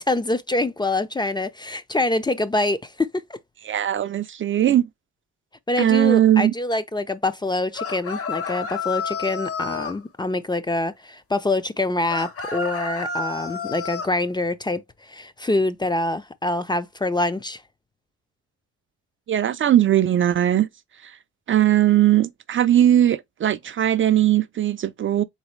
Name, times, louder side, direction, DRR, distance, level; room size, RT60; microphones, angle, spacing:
voice 1, 0.1-3.4 5.7-17.6, left 2 dB, 15° left, 0.5 m, -25 dB
voice 2, 3.6-4.9 5.8-6.5 19.3-20.7 21.0-21.2 21.5-25.2, right 11 dB, 40° right, 0.4 m, -19 dB
sound 1, 7.7-10.0 12.1-14.1, left 4 dB, 50° left, 1.1 m, -30 dB
4.0 x 3.9 x 3.1 m
cardioid pair, 90°, 30 cm